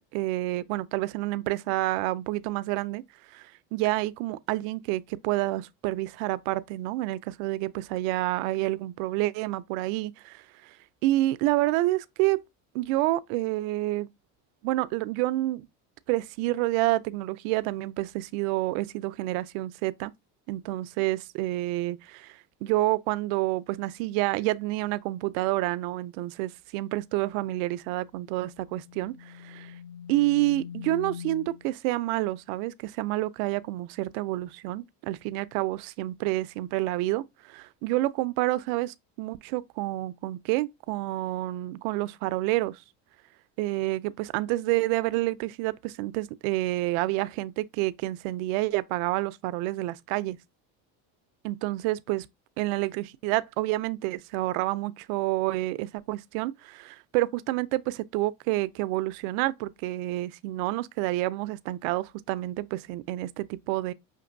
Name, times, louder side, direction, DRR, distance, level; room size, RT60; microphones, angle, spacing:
voice 1, 0.0-3.0 3.3-10.7 11.0-12.4 12.7-14.1 14.6-15.7 16.1-20.1 20.5-29.7 30.1-42.8 43.6-50.4 51.4-52.3 52.6-63.9, right 18 dB, 80° right, 0.5 m, -29 dB
sound 1, 27.8-31.7, left 8 dB, 70° left, 0.7 m, -43 dB
5.9 x 2.7 x 2.6 m
supercardioid pair, 110°, 41 cm